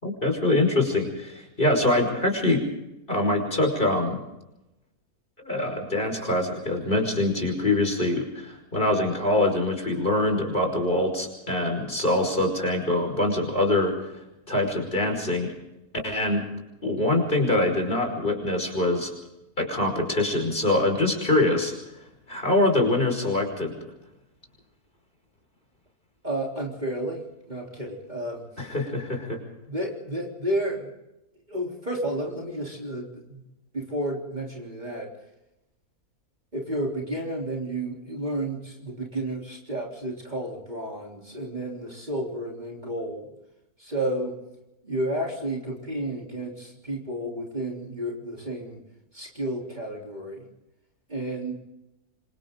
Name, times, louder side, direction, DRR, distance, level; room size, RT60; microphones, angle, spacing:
voice 1, 0.0-2.6 3.1-4.2 5.4-14.0 14.5-15.5 16.0-16.4 16.8-19.1 19.6-21.7 22.3-23.7 28.6-29.4, left 2 dB, 35° left, 3 dB, 5.6 m, -24 dB
voice 2, 26.2-28.6 29.7-30.9 31.5-33.4 33.7-35.1 36.5-43.3 43.8-44.4 44.8-48.8 49.1-50.5 51.1-51.6, right 1 dB, 30° right, -1 dB, 3.8 m, -31 dB
27.5 x 25.5 x 3.9 m, 0.92 s
omnidirectional pair, 1.6 m